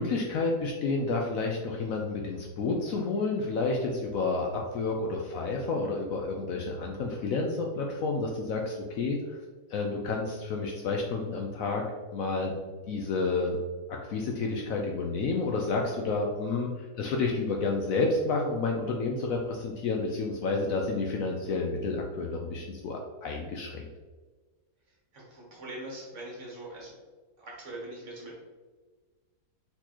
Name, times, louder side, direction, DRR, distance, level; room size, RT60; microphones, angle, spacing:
voice 1, 0.0-9.2 9.7-11.8 12.1-12.5 12.9-13.6 13.9-23.9, left 3 dB, 70° left, 1 dB, 0.9 m, -30 dB
voice 2, 25.1-27.0 27.4-28.3, right 1 dB, 50° right, -3 dB, 1.4 m, -42 dB
4.4 x 4.1 x 2.9 m, 1.3 s
omnidirectional pair, 1.7 m